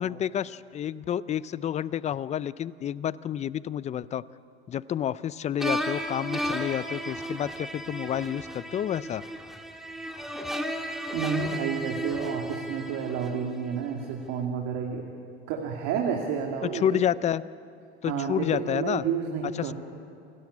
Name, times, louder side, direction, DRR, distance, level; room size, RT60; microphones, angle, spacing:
voice 1, 0.0-4.2 4.7-9.2 16.6-17.4 18.0-19.0 19.6-19.7, left 10 dB, 20° left, 19 dB, 0.4 m, -29 dB
sound 1, 5.6-13.8, equal, ahead, 1.7 m, -34 dB
voice 2, 11.1-15.1 15.5-17.1 18.0-19.7, right 6 dB, 55° right, 1 dB, 2.5 m, -30 dB
28.0 x 13.0 x 8.6 m, 2.5 s
hypercardioid pair, 110°, 32 cm